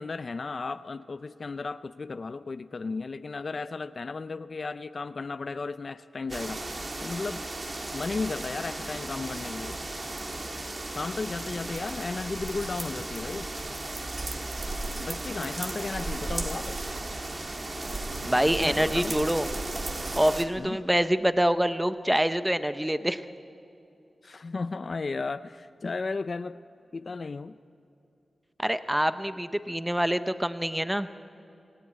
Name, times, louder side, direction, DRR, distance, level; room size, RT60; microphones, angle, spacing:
voice 1, 0.0-6.6 7.0-7.5 7.9-9.8 10.9-13.5 15.0-16.8 18.3-19.2 20.6-20.8 24.2-26.6 26.9-27.6, left 4 dB, 40° left, 12 dB, 0.5 m, -34 dB
sound 1, 6.3-20.4, right 2 dB, 30° right, 1.6 m, -35 dB
voice 2, 18.2-19.5 20.2-23.2 28.6-31.1, equal, 5° right, 11 dB, 0.7 m, -25 dB
27.5 x 18.0 x 8.6 m, 2.8 s
wide cardioid pair, 160°, 0 cm